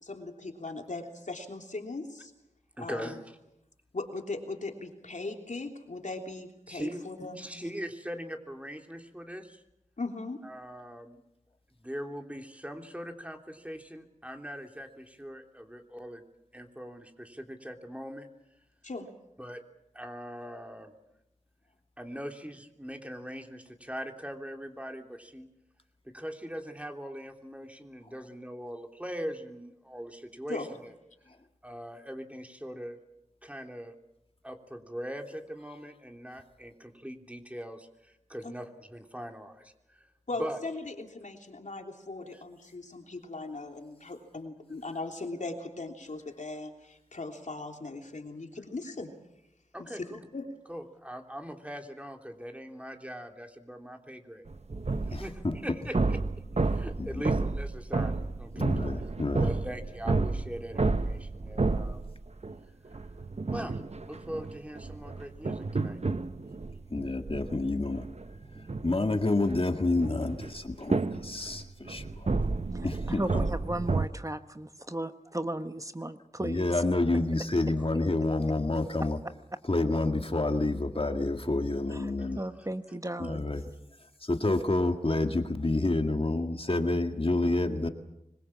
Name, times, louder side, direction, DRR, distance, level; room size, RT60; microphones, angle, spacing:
voice 1, 0.0-2.3 2.8-3.2 3.9-7.5 10.0-10.4 18.8-19.1 30.5-30.7 38.4-38.5 40.3-49.1 49.8-50.5, left 3 dB, 75° left, 3.3 m, -39 dB
voice 2, 2.8-3.2 6.7-7.1 7.4-9.6 10.4-11.2 11.8-16.2 16.5-18.3 19.4-19.6 19.9-20.9 22.0-25.5 26.0-30.9 31.6-33.0 33.4-33.9 34.4-40.1 40.4-40.6 42.3-42.4 49.7-50.2 50.7-54.5 55.1-56.2 56.6-58.7 59.4-62.1 63.5-66.0 82.5-82.7, equal, 10° right, 3.3 m, -41 dB
sound 1, 54.5-62.6 62.9-74.1, right 3 dB, 60° right, 1.1 m, -31 dB
voice 3, 55.1-55.6 57.0-57.2 58.6-59.5 66.9-68.1 68.5-72.3 72.8-73.5 76.4-79.2 79.6-82.4 83.2-83.7 84.0-87.9, left 2 dB, 45° left, 1.9 m, -29 dB
voice 4, 73.2-76.7 82.4-83.4, right 1 dB, 25° right, 1.2 m, -35 dB
25.5 x 21.5 x 7.4 m
wide cardioid pair, 45°, 13 cm